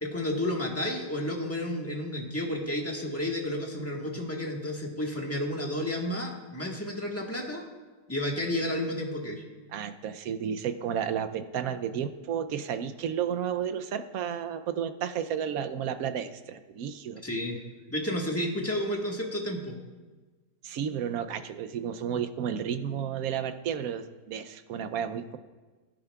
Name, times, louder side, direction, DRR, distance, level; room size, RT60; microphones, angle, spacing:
voice 1, 0.0-7.7 8.1-9.4 17.2-17.6 17.9-19.8, left 1 dB, 10° left, -1 dB, 1.3 m, -31 dB
voice 2, 9.7-17.2 20.6-25.4, right 8 dB, 70° right, 9 dB, 0.9 m, -32 dB
19.5 x 10.0 x 2.3 m, 1.3 s
omnidirectional pair, 1.8 m